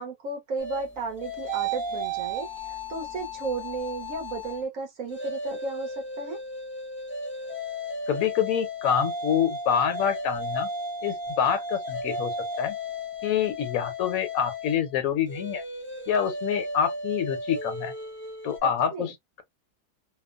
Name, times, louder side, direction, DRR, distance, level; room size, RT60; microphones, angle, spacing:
voice 1, 0.0-6.4 18.6-19.1, right 3 dB, 65° right, 1.1 m, -34 dB
sound 1, 0.6-4.6 5.0-18.6, equal, 15° left, 0.5 m, -34 dB
voice 2, 8.1-10.7 11.0-12.8 13.2-15.6 16.1-17.9 18.4-19.1, left 8 dB, 70° left, 1.1 m, -26 dB
2.9 x 2.0 x 2.4 m
omnidirectional pair, 1.6 m